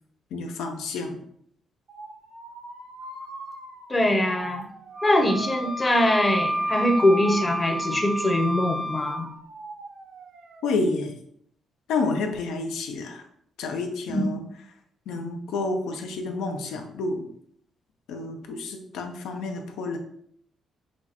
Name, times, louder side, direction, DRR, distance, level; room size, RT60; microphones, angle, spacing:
voice 1, 0.3-1.2 10.6-11.1 11.9-13.2 13.6-14.4 15.1-17.2 18.1-20.0, left 3 dB, 85° left, 4 dB, 0.6 m, -29 dB
sound 1, 1.9-10.8, right 2 dB, 65° right, 0.9 m, -43 dB
voice 2, 3.9-4.7 5.0-9.3 14.1-14.3, left 1 dB, 20° left, 4 dB, 0.7 m, -22 dB
Wind instrument woodwind instrument, 4.9-9.2, equal, 20° right, 0.6 m, -29 dB
6.0 x 2.3 x 2.9 m, 0.67 s
cardioid pair, 90°, 0 cm